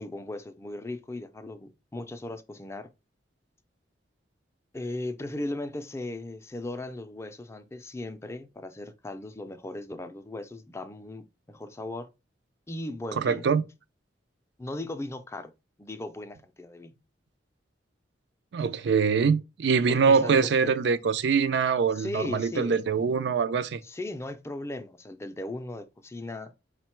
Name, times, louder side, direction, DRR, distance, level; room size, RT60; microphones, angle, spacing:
voice 1, 0.0-2.9 4.7-12.1 12.7-13.5 14.6-15.5 15.8-16.9 19.9-20.8 22.0-22.8 23.8-26.5, left 2 dB, 15° left, 0.4 m, -37 dB
voice 2, 13.2-13.6 18.5-23.8, right 5 dB, 70° right, 0.4 m, -24 dB
5.0 x 2.2 x 4.3 m
head